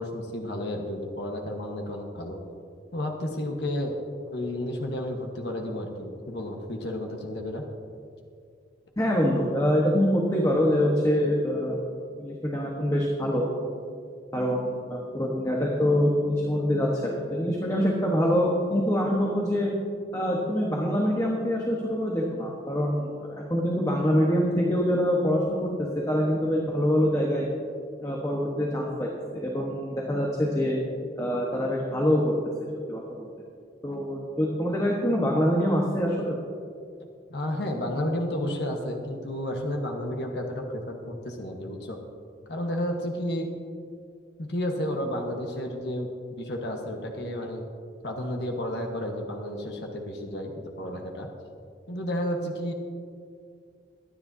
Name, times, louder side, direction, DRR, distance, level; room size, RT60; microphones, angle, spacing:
voice 1, 0.0-2.4 2.9-4.0 4.3-7.6 37.3-42.0 42.5-43.5 44.4-47.6 48.0-51.3 51.9-52.7, left 1 dB, 70° left, 1 dB, 1.3 m, -32 dB
voice 2, 9.0-11.8 12.2-13.5 14.3-19.7 20.1-27.5 28.0-30.8 31.2-32.3 32.9-33.3 33.8-36.4, equal, 20° left, -2 dB, 1.2 m, -25 dB
22.5 x 10.0 x 2.8 m, 2.3 s
head